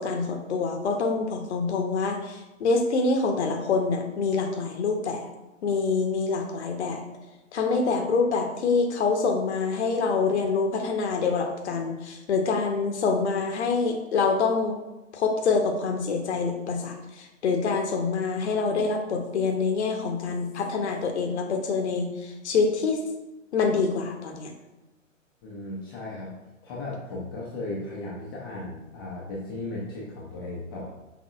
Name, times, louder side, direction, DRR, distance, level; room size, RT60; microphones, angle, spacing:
voice 1, 0.0-5.3 5.6-7.0 7.5-14.8 15.1-23.0 23.5-24.5, left 4 dB, 60° left, 3 dB, 0.8 m, -26 dB
voice 2, 25.4-26.3 26.6-30.9, left 2 dB, 20° left, -5 dB, 0.5 m, -36 dB
5.9 x 3.6 x 2.3 m, 1.0 s
figure-of-eight pair, 120°, 39 cm